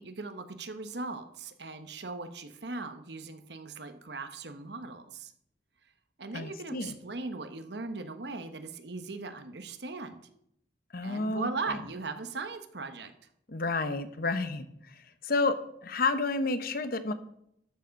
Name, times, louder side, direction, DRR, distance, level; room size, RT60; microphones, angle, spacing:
voice 1, 0.0-5.3 6.2-10.3 11.0-13.1, right 3 dB, 65° right, 9 dB, 1.2 m, -39 dB
voice 2, 6.3-6.9 10.9-11.5 13.5-15.6 15.8-17.1, left 3 dB, 55° left, 11 dB, 1.0 m, -30 dB
13.0 x 7.2 x 5.3 m, 0.74 s
head